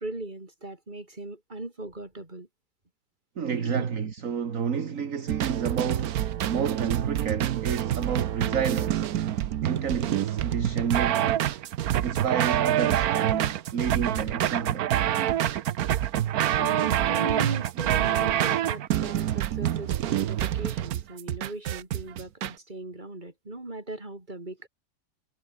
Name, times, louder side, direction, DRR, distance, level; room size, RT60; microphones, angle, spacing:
voice 1, 0.0-2.5 3.6-3.9 16.6-24.7, right 2 dB, 25° right, 4.2 m, -38 dB
voice 2, 3.4-9.2 9.6-11.4 12.0-14.9, right 7 dB, 45° right, 1.8 m, -30 dB
sound 1, 5.3-22.5, right 11 dB, 60° right, 1.1 m, -26 dB
omnidirectional pair, 2.1 m